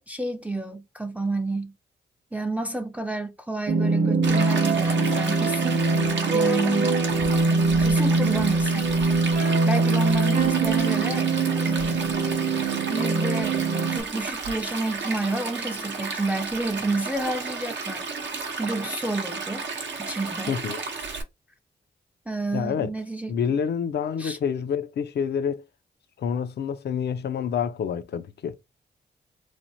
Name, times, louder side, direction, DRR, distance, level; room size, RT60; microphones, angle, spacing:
voice 1, 0.0-1.7 2.3-5.8 6.3-7.0 7.8-9.1 9.6-11.3 11.6-12.2 12.9-13.6 13.9-18.1 18.6-19.7 20.0-20.6 22.3-23.3 24.2-24.4, right 2 dB, 10° right, 0.4 m, -30 dB
sound 1, 3.7-14.0, right 3 dB, 45° right, 0.7 m, -23 dB
Stream, 4.2-21.2, right 4 dB, 75° right, 0.7 m, -32 dB
voice 2, 20.5-20.8 22.5-22.9 23.3-25.6 26.2-28.5, left 7 dB, 65° left, 0.4 m, -28 dB
3.1 x 2.0 x 2.6 m
cardioid pair, 65°, 18 cm